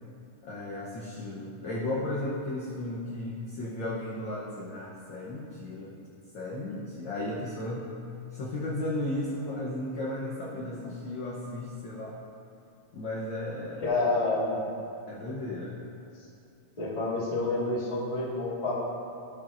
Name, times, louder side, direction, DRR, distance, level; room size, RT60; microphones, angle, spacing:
voice 1, 0.4-5.9 6.3-7.9 8.3-12.2 12.9-13.9 15.1-15.8, left 1 dB, 60° left, -5 dB, 1.3 m, -35 dB
voice 2, 13.8-14.6 16.8-18.8, left 2 dB, 15° left, -7 dB, 1.3 m, -28 dB
16.0 x 6.8 x 2.6 m, 2.6 s
omnidirectional pair, 3.4 m